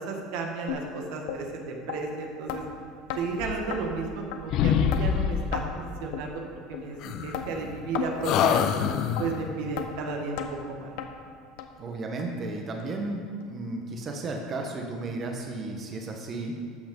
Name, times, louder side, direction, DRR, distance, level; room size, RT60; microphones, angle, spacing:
voice 1, 0.0-2.7 3.2-8.6 9.2-10.9, right 4 dB, 70° right, 2 dB, 1.5 m, -33 dB
sound 1, 0.7-0.8 1.3-1.4 1.9-2.0 2.5-2.6 3.1-3.2 3.7-3.8 4.3-4.4 4.9-5.0 5.5-5.7 6.1-6.3 6.7-6.8 7.3-7.5 7.9-8.1 8.5-8.7 9.2-9.3 9.8-9.9 10.4-10.5 11.0-11.1 11.6-11.7 12.2-12.3 12.8-12.9 13.4-13.5, left 10 dB, 70° left, 0.9 m, -33 dB
sound 2, 3.4-4.2 4.5-5.7 7.0-7.9 8.2-9.5, left 8 dB, 50° left, 0.6 m, -26 dB
voice 2, 11.8-16.5, right 2 dB, 30° right, 2 dB, 1.2 m, -34 dB
13.0 x 5.8 x 5.3 m, 2.3 s
supercardioid pair, 135°, 0 cm